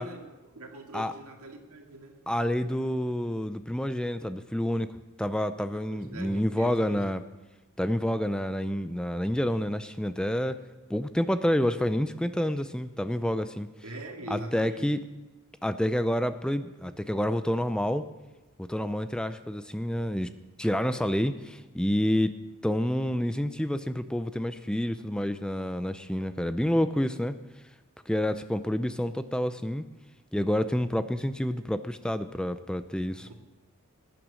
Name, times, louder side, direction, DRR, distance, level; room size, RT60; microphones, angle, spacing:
voice 1, 0.0-2.2 5.7-7.1 13.8-14.9 33.2-33.3, right 1 dB, 80° right, 3 dB, 2.1 m, -42 dB
voice 2, 2.3-4.9 5.2-7.2 7.8-10.6 10.9-13.7 14.3-15.0 15.6-18.0 18.6-20.3 20.6-22.4 22.6-27.4 28.1-29.8 30.3-33.3, equal, 5° left, 11 dB, 0.4 m, -28 dB
20.0 x 9.1 x 6.3 m, 1.1 s
head